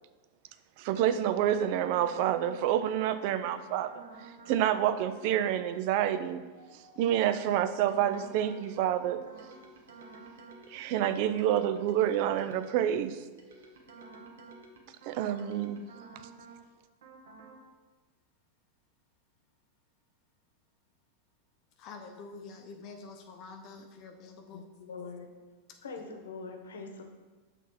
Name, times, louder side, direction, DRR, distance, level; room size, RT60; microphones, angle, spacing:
voice 1, 0.8-3.9 4.2-6.4 6.7-9.2 10.7-13.2 15.1-15.9, right 10 dB, 55° right, 11 dB, 0.4 m, -28 dB
sound 1, 1.9-2.6 3.0-3.6 3.9-4.6 5.0-5.6 5.9-13.0 13.4-16.6 17.0-17.6, right 3 dB, 75° right, 1.1 m, -52 dB
voice 2, 21.8-24.6, left 4 dB, 45° left, 4 dB, 0.7 m, -47 dB
voice 3, 24.5-25.3 25.8-27.0, left 4 dB, 80° left, 4 dB, 1.0 m, -43 dB
6.1 x 3.6 x 5.8 m, 1.3 s
hypercardioid pair, 100°, 0 cm